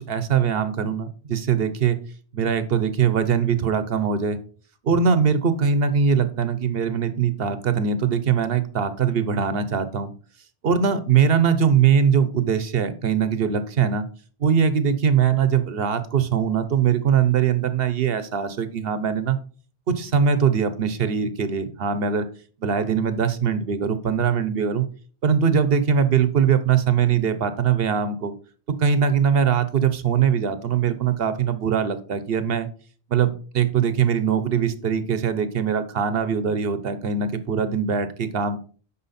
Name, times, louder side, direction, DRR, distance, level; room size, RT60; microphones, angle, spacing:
voice 1, 0.0-2.0 2.3-4.4 4.8-10.1 10.6-14.1 14.4-19.4 19.9-22.3 22.6-24.9 25.2-28.3 28.7-32.7 33.1-38.6, right 7 dB, 70° right, 12 dB, 1.2 m, -21 dB
9.8 x 6.1 x 4.2 m, 0.41 s
omnidirectional pair, 1.0 m